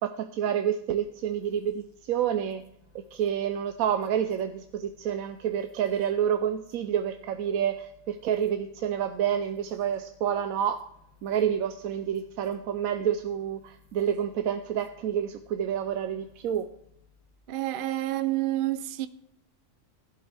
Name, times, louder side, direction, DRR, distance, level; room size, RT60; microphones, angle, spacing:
voice 1, 0.0-2.6 2.9-10.8 11.2-16.7, right 9 dB, 90° right, 1.1 m, -28 dB
sound 1, 0.9-17.5, left 5 dB, 20° right, 1.1 m, -62 dB
voice 2, 17.5-19.1, right 15 dB, 55° right, 0.6 m, -28 dB
15.5 x 11.5 x 3.4 m
omnidirectional pair, 1.4 m